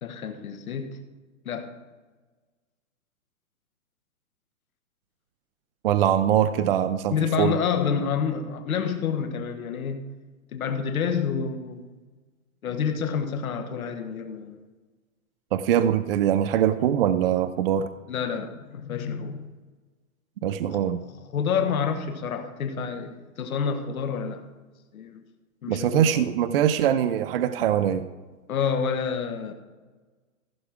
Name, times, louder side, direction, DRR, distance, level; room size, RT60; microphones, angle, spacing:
voice 1, 0.0-1.0 1.4-1.7 7.1-10.0 10.5-11.8 12.6-14.6 18.1-19.5 20.7-20.8 21.3-24.4 24.9-25.2 25.6-26.2 28.5-29.5, left 6 dB, 85° left, 6 dB, 1.4 m, -28 dB
voice 2, 5.8-7.6 15.5-17.9 20.4-21.0 25.7-28.1, right 10 dB, 45° right, 13 dB, 0.5 m, -23 dB
15.0 x 5.9 x 4.9 m, 1.3 s
hypercardioid pair, 150°, 41 cm